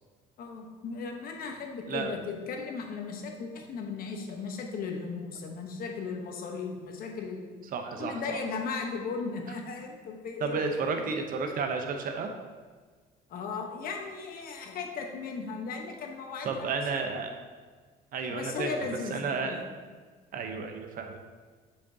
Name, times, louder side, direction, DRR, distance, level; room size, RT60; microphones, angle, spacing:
voice 1, 0.4-7.5 8.0-10.6 13.3-17.0 18.3-19.7, left 4 dB, 60° left, 2 dB, 1.0 m, -36 dB
voice 2, 7.7-8.4 10.4-12.3 16.4-17.4 18.1-18.8 19.1-19.6 20.3-21.2, right 4 dB, 55° right, 5 dB, 0.8 m, -32 dB
7.1 x 5.1 x 2.8 m, 1.4 s
cardioid pair, 110°, 17 cm